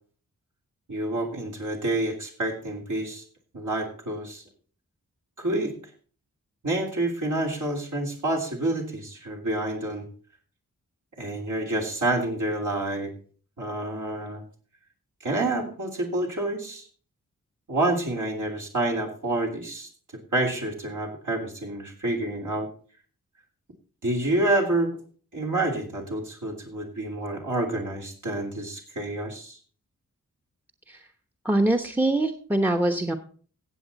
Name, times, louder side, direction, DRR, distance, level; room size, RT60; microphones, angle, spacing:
voice 1, 0.9-3.2 3.5-4.4 5.4-5.7 6.6-10.0 11.2-13.1 13.6-14.4 15.2-16.9 17.7-19.9 20.3-22.7 24.0-25.0 25.3-29.6, right 2 dB, 65° right, -2 dB, 3.2 m, -28 dB
voice 2, 31.4-33.1, right 1 dB, 5° right, 7 dB, 1.0 m, -23 dB
16.5 x 7.5 x 4.1 m, 0.43 s
cardioid pair, 50°, 33 cm